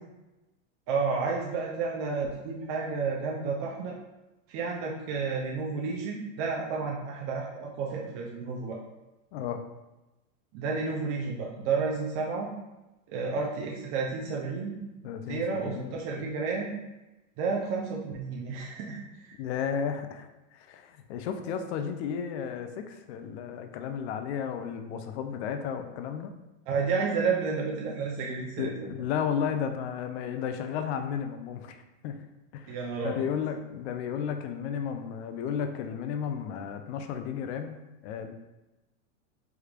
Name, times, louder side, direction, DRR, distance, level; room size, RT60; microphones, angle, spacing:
voice 1, 0.9-4.0 4.5-8.8 10.5-12.5 13.1-14.9 15.3-16.8 17.4-19.3 26.7-28.7 32.7-33.3, right 4 dB, 40° right, -2 dB, 0.4 m, -31 dB
voice 2, 15.0-16.3 19.4-20.3 20.5-26.3 28.6-31.7 32.0-32.2 32.5-32.8 33.0-38.3, left 7 dB, 60° left, 7 dB, 0.5 m, -33 dB
3.4 x 3.1 x 2.4 m, 1.0 s
supercardioid pair, 125°, 39 cm